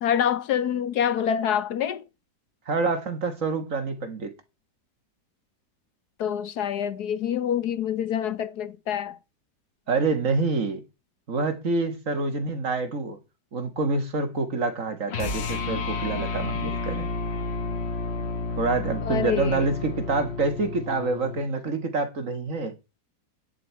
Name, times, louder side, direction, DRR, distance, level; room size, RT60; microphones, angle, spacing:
voice 1, 0.0-2.0 6.2-9.2 19.0-19.7, left 9 dB, 70° left, 1.3 m, -26 dB
voice 2, 2.7-4.3 9.9-10.8 11.3-13.2 13.5-17.1 18.6-22.7, right 3 dB, 50° right, 2.0 m, -27 dB
sound 1, 15.1-21.5, left 4 dB, 45° left, 1.2 m, -31 dB
11.0 x 9.3 x 4.6 m
omnidirectional pair, 1.8 m